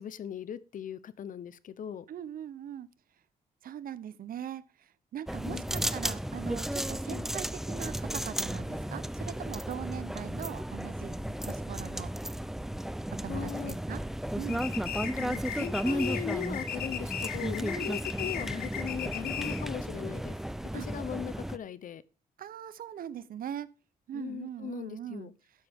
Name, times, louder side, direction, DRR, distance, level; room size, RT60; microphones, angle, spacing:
voice 1, 0.0-2.1 5.4-5.8 7.1-7.3 13.3-13.7 15.0-20.4 20.7-22.0 24.1-25.3, left 9 dB, 60° left, 0.8 m, -39 dB
voice 2, 2.1-2.9 3.6-11.2 11.5-12.1 13.1-14.0 14.4-14.7 17.7-18.0 20.7-20.9 22.4-23.7 24.1-25.3, right 10 dB, 70° right, 0.7 m, -41 dB
sound 1, 5.3-21.6, right 1 dB, ahead, 0.5 m, -34 dB
sound 2, 14.5-19.8, left 9 dB, 85° left, 1.3 m, -37 dB
12.5 x 9.4 x 3.5 m
wide cardioid pair, 135°, 15 cm